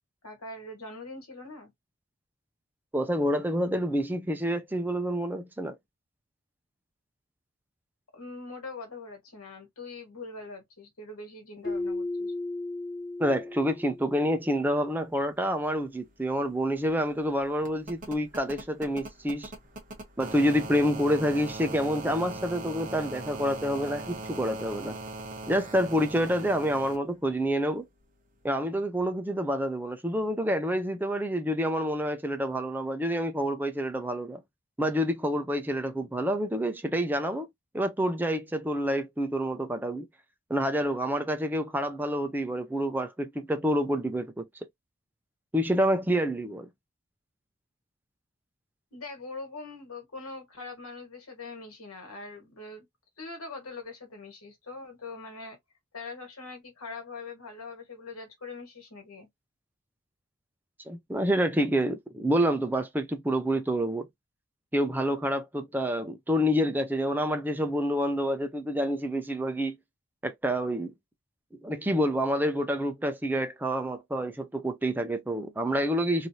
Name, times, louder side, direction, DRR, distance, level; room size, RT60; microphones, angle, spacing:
voice 1, 0.2-1.7 8.1-12.3 48.9-52.9 53.2-55.6 55.9-59.3, left 3 dB, 80° left, 1.5 m, -42 dB
voice 2, 2.9-5.8 13.2-19.5 20.2-25.0 25.5-27.9 28.4-34.4 34.8-37.5 37.7-40.1 40.5-44.5 45.5-46.7 60.9-64.1 64.7-69.8 70.2-70.9 71.6-76.3, equal, 10° right, 0.4 m, -28 dB
Keyboard (musical), 11.6-14.4, left 2 dB, 40° left, 1.0 m, -35 dB
sound 1, 15.7-15.8 16.0-27.0 28.4-28.5, right 2 dB, 35° right, 1.0 m, -41 dB
3.2 x 2.6 x 2.7 m
head